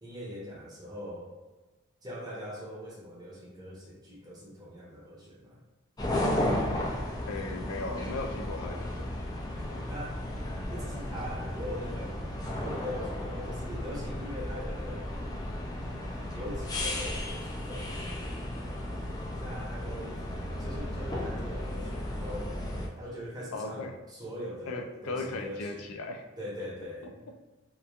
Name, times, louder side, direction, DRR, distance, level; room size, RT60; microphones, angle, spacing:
voice 1, 0.0-1.3 2.0-5.6 9.9-10.2 10.7-15.1 16.3-18.8 19.4-20.2 20.6-22.6 22.9-25.9 26.4-27.3, equal, 20° right, -5 dB, 0.7 m, -41 dB
sound 1, 6.0-22.9, left 1 dB, 20° left, 0.3 m, -34 dB
voice 2, 7.3-9.1 9.7-9.9 23.5-23.9 24.7-26.3, left 3 dB, 90° left, 3 dB, 0.4 m, -37 dB
2.9 x 2.3 x 2.4 m, 1.2 s
head